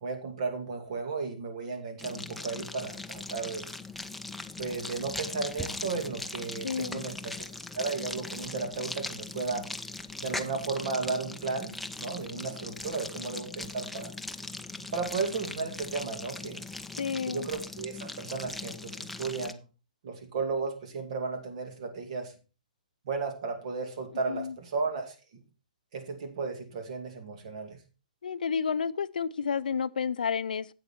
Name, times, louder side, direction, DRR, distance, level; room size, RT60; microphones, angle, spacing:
voice 1, 0.0-3.7 4.6-7.3 7.7-9.7 10.2-14.1 14.9-16.7 17.3-19.6 20.0-22.3 23.0-25.4 25.9-27.8, right 4 dB, 50° right, 2.4 m, -34 dB
sound 1, 2.0-19.5, left 2 dB, ahead, 0.5 m, -40 dB
voice 2, 6.6-7.1 17.0-17.5 24.3-24.5 28.2-30.7, left 6 dB, 85° left, 0.4 m, -31 dB
8.3 x 8.0 x 4.4 m
hypercardioid pair, 150°, 5 cm